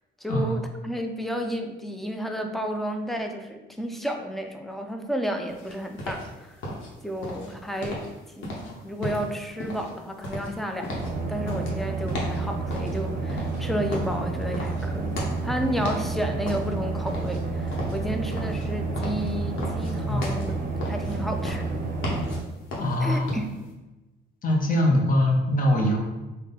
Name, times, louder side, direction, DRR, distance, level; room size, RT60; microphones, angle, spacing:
voice 1, 0.2-6.6 7.0-8.0 8.4-20.6 20.9-21.9 23.0-23.6, equal, ahead, 4 dB, 0.4 m, -32 dB
sound 1, 5.5-23.7, left 1 dB, 80° left, 0.9 m, -36 dB
sound 2, 10.9-22.4, right 3 dB, 45° right, 0.6 m, -30 dB
voice 2, 22.8-23.3 24.4-26.0, left 1 dB, 45° left, 0 dB, 0.7 m, -22 dB
3.6 x 2.1 x 3.7 m, 1.1 s
cardioid pair, 90°, 20 cm